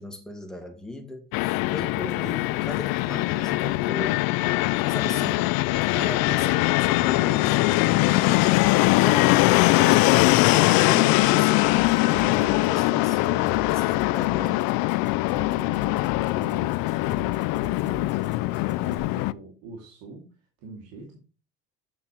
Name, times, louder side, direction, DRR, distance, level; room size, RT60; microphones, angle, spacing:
voice 1, 0.0-4.2 4.9-5.5 5.9-9.4 9.8-14.7, left 1 dB, ahead, 2.2 m, -37 dB
Fixed-wing aircraft airplane, 1.3-19.3, left 20 dB, 85° left, 0.5 m, -22 dB
sound 1, 11.7-19.0, left 1 dB, 35° right, 2.3 m, -42 dB
voice 2, 15.3-17.3 17.6-21.2, right 3 dB, 85° right, 2.6 m, -44 dB
8.7 x 6.9 x 4.4 m
cardioid pair, 120°, 34 cm